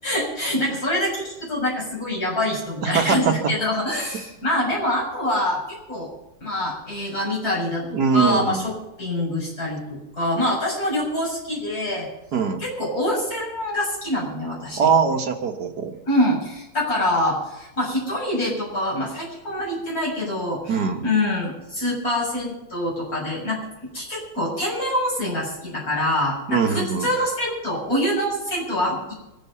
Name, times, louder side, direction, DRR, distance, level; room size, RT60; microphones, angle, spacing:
voice 1, 0.0-6.1 6.4-12.1 12.6-14.9 16.1-23.6 23.9-29.1, left 1 dB, 50° left, -5 dB, 7.7 m, -25 dB
voice 2, 2.8-3.4 7.9-8.7 12.3-12.6 14.8-16.0 20.7-21.0 26.5-27.1, right 6 dB, 60° right, 4 dB, 1.9 m, -21 dB
24.0 x 9.8 x 5.5 m, 0.95 s
omnidirectional pair, 2.0 m